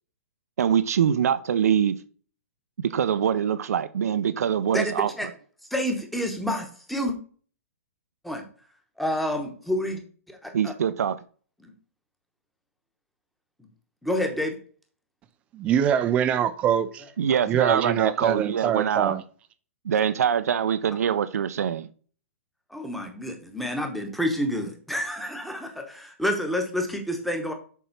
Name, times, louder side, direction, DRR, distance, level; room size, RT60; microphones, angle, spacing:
voice 1, 0.6-2.0 2.8-5.1 10.5-11.2 17.2-19.2 19.8-21.9, right 8 dB, 80° right, 0.6 m, -24 dB
voice 2, 4.7-5.3 5.7-7.1 8.2-8.4 9.0-10.0 10.3-10.7 11.6-11.7 14.0-14.6 22.7-27.5, equal, ahead, 1.0 m, -28 dB
voice 3, 15.5-17.0 17.5-19.2, right 9 dB, 15° right, 0.4 m, -24 dB
7.1 x 4.2 x 5.8 m
hypercardioid pair, 165°, 8 cm